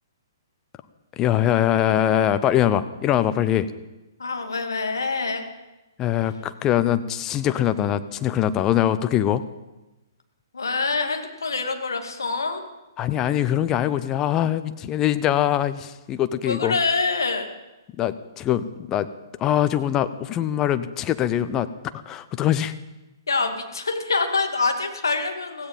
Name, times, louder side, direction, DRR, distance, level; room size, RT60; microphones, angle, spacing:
voice 1, 1.2-3.7 6.0-9.4 13.0-16.7 18.0-19.1 19.4-21.7 21.9-22.7, left 11 dB, 20° left, 12 dB, 0.7 m, -22 dB
voice 2, 4.2-5.5 10.5-12.6 16.4-17.5 23.3-25.7, left 4 dB, 65° left, 5 dB, 2.1 m, -25 dB
17.0 x 16.0 x 5.4 m, 1.0 s
figure-of-eight pair, 120°, 2 cm